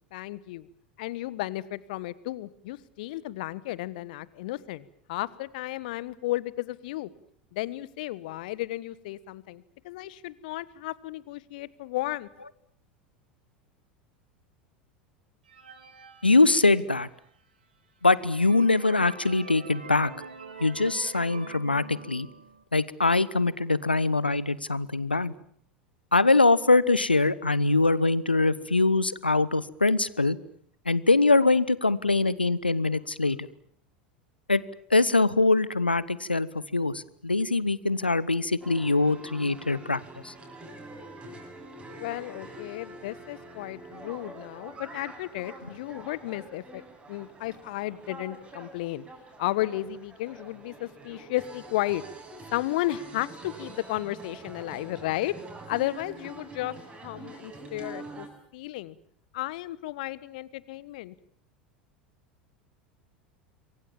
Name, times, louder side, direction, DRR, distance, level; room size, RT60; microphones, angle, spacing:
voice 1, 0.1-0.7 1.0-7.1 7.5-12.3 42.0-46.8 47.1-49.0 49.4-52.0 52.5-55.3 55.7-56.7 57.0-58.3 58.5-59.0 59.3-61.1, left 16 dB, 55° left, 19 dB, 1.3 m, -33 dB
sound 1, 15.5-17.1 17.6-17.7 18.1-22.6, right 6 dB, 70° right, 3.6 m, -45 dB
voice 2, 16.2-17.1 18.0-20.1 20.6-22.3 22.7-25.3 26.1-30.4 30.9-33.5 34.5-34.6 34.9-40.3, left 3 dB, 85° left, 20 dB, 1.0 m, -23 dB
sound 2, 38.6-58.3, right 2 dB, 20° right, 8.0 m, -45 dB
27.5 x 23.5 x 7.3 m, 0.63 s
figure-of-eight pair, 80°, 5 cm